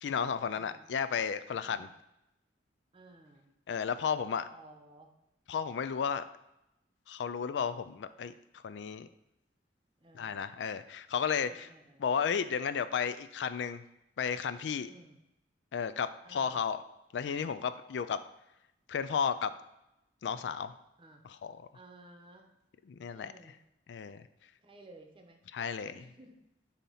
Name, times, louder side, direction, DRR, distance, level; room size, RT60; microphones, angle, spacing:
voice 1, 0.0-1.9 3.7-4.5 5.5-6.2 7.1-9.1 10.1-11.7 12.0-13.8 14.2-14.9 15.7-16.8 17.1-18.2 18.9-19.5 20.2-20.7 21.2-21.6 22.9-23.3 23.9-24.2 25.5-26.0, left 7 dB, 80° left, 12 dB, 0.4 m, -33 dB
voice 2, 0.5-0.8 1.6-1.9 2.9-3.5 4.5-5.1 10.0-10.5 11.5-12.0 14.9-15.2 16.2-16.6 21.0-21.2 21.7-22.5 23.1-23.6 24.6-25.4 25.9-26.4, right 2 dB, 30° right, 4 dB, 0.8 m, -56 dB
7.1 x 2.9 x 5.5 m, 0.85 s
head